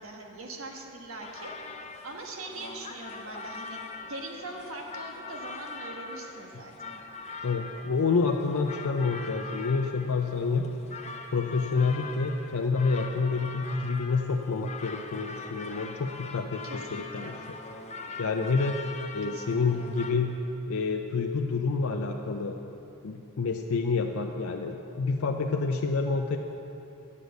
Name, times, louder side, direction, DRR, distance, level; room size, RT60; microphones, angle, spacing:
voice 1, 0.0-3.8 4.1-7.0 16.6-17.4 19.3-19.9, right 2 dB, 70° right, 1 dB, 1.3 m, -42 dB
sound 1, 1.2-20.1, left 4 dB, 30° left, 0.6 m, -42 dB
voice 2, 7.4-10.7 11.3-17.3 18.2-18.8 19.1-20.4 20.7-22.6 23.0-26.4, left 4 dB, 75° left, 2 dB, 0.5 m, -28 dB
9.9 x 6.5 x 8.0 m, 2.9 s
head